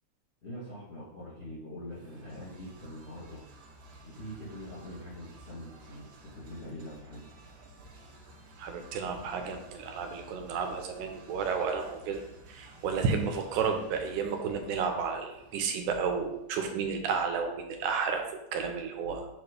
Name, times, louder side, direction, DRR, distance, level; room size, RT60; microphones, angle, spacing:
voice 1, 0.4-3.4 4.0-7.3, equal, 40° left, -8 dB, 1.0 m, -43 dB
sound 1, 1.9-16.6, right 1 dB, 65° right, 1.4 m, -54 dB
voice 2, 8.6-12.2 12.5-19.3, right 5 dB, 85° right, 5 dB, 2.1 m, -32 dB
6.9 x 3.0 x 5.0 m, 0.85 s
omnidirectional pair, 3.6 m